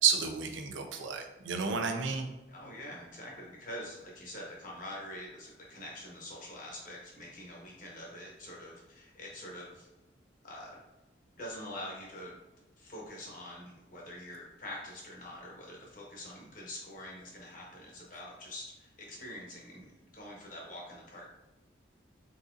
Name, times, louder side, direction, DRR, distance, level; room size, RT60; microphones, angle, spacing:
voice 1, 0.0-2.3, right 6 dB, 85° right, 4 dB, 0.6 m, -31 dB
voice 2, 2.5-9.9 10.4-10.8 11.4-12.4 12.8-21.3, left 1 dB, 45° left, -3 dB, 1.1 m, -45 dB
4.1 x 3.9 x 2.5 m, 1.0 s
head